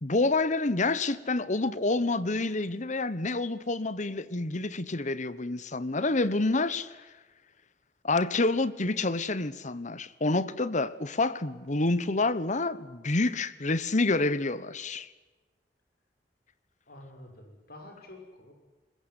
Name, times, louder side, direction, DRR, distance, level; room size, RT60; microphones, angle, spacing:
voice 1, 0.0-7.0 8.0-15.1, left 2 dB, 45° left, 1.2 m, -28 dB
voice 2, 16.9-18.5, left 1 dB, 60° left, 6.7 m, -48 dB
21.5 x 21.5 x 10.0 m
head